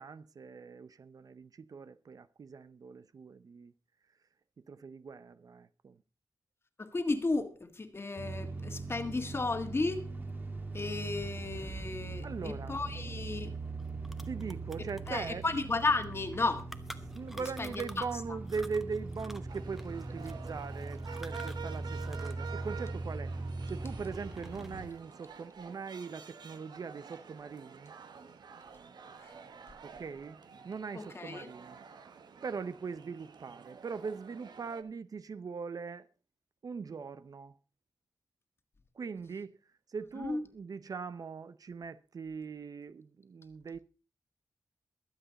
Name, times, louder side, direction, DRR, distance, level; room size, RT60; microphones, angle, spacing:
voice 1, 0.0-3.7 4.7-6.0 12.2-12.8 14.2-15.4 17.1-23.3 23.7-27.9 29.8-30.4 30.6-31.8 32.4-36.1 36.6-37.5 38.9-39.6 39.9-43.8, right 5 dB, 60° right, 0.7 m, -41 dB
voice 2, 6.8-10.0 10.7-13.5 15.1-16.7 17.4-18.0 29.2-29.3 30.9-31.5 40.2-40.4, left 3 dB, 35° left, 1.7 m, -34 dB
sound 1, 8.2-24.9, right 3 dB, 30° right, 1.8 m, -41 dB
sound 2, 13.5-13.6 13.8-18.2 18.5-22.5 22.7-23.9 24.3-24.9, equal, 5° right, 1.0 m, -51 dB
sound 3, 19.5-34.8, right 6 dB, 85° right, 1.2 m, -50 dB
22.5 x 8.0 x 4.1 m
wide cardioid pair, 120°, 7 cm